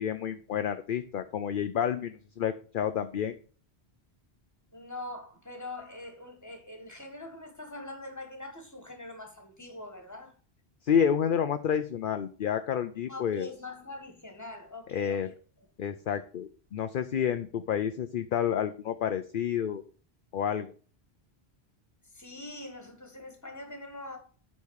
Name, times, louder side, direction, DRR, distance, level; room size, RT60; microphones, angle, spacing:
voice 1, 0.0-3.4 10.8-13.5 14.9-15.3 15.8-19.8 20.3-20.7, left 8 dB, 55° left, 0.7 m, -29 dB
voice 2, 4.7-10.3 13.1-15.3 22.1-24.2, left 2 dB, 15° left, 1.8 m, -43 dB
8.4 x 4.2 x 6.4 m
omnidirectional pair, 1.1 m